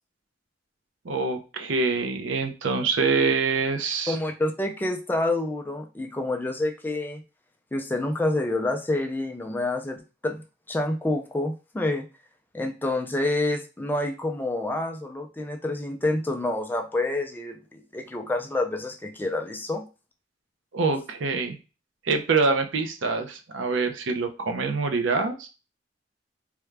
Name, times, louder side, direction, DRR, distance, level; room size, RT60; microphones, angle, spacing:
voice 1, 1.0-4.2 20.7-21.6 22.0-25.5, right 4 dB, 80° right, 6 dB, 0.6 m, -25 dB
voice 2, 4.1-7.2 7.7-12.1 12.5-19.8, left 2 dB, 10° left, 4 dB, 0.3 m, -28 dB
3.5 x 2.2 x 3.2 m, 0.31 s
head